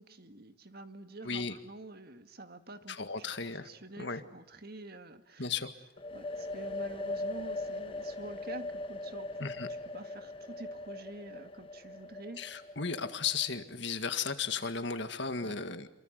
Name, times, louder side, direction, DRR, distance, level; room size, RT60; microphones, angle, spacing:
voice 1, 0.0-5.5 6.1-12.4 15.4-15.6, right 2 dB, 50° right, 8 dB, 1.8 m, -48 dB
voice 2, 1.2-1.6 2.9-3.7 4.0-4.2 5.4-5.7 9.4-9.7 12.4-15.9, left 5 dB, 60° left, 9 dB, 1.9 m, -35 dB
sound 1, 6.0-13.6, left 2 dB, 25° left, 1.2 m, -40 dB
28.0 x 23.5 x 8.1 m, 0.96 s
head